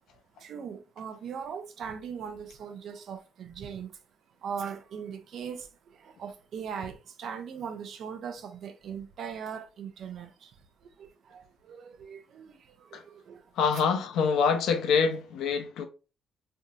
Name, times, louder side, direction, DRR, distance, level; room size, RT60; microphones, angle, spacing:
voice 1, 0.4-4.0 4.4-13.8, right 7 dB, 70° right, 0.5 m, -40 dB
voice 2, 13.6-15.9, left 6 dB, 85° left, 0.5 m, -25 dB
3.4 x 2.8 x 2.3 m
cardioid pair, 90°, 0 cm